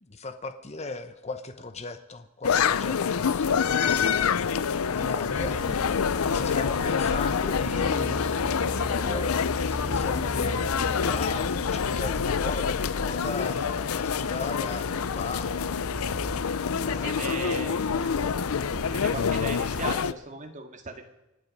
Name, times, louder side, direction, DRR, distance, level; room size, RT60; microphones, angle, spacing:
voice 1, 0.0-5.6 6.3-9.4 9.7-15.7 16.8-17.7, left 3 dB, 30° left, 9 dB, 0.9 m, -37 dB
sound 1, 2.4-20.1, left 6 dB, 85° left, 0.5 m, -27 dB
sound 2, 5.3-19.9, equal, 5° right, 4.3 m, -37 dB
voice 2, 16.8-17.8 18.8-21.1, right 3 dB, 35° right, 4 dB, 1.9 m, -37 dB
26.0 x 8.8 x 5.3 m, 0.95 s
head